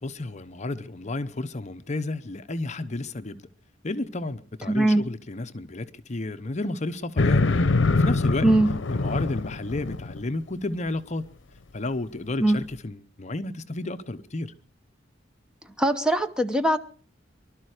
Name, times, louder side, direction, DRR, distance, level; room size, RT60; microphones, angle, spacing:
voice 1, 0.0-3.4 3.8-7.5 7.9-8.5 8.9-11.3 11.7-14.5, left 2 dB, 40° left, 0.8 m, -32 dB
voice 2, 4.7-5.1 8.4-8.7 12.4-12.6 15.8-16.8, right 1 dB, 5° right, 0.9 m, -21 dB
sound 1, 7.2-10.2, left 3 dB, 85° left, 0.7 m, -23 dB
24.0 x 12.0 x 4.9 m
head